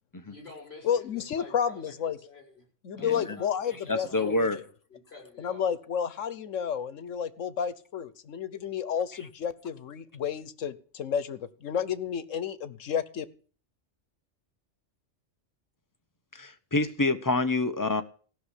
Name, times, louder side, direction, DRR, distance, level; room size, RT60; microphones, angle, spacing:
voice 1, 0.1-1.9 2.2-2.6 3.0-4.4 4.9-5.6, left 3 dB, 55° left, 7.3 m, -49 dB
voice 2, 0.8-2.2 2.8-4.5 5.4-13.2, left 8 dB, 90° left, 1.3 m, -31 dB
voice 3, 3.0-3.4 3.9-4.6 16.3-18.0, left 2 dB, 15° left, 1.0 m, -27 dB
16.5 x 6.1 x 9.9 m
omnidirectional pair, 1.3 m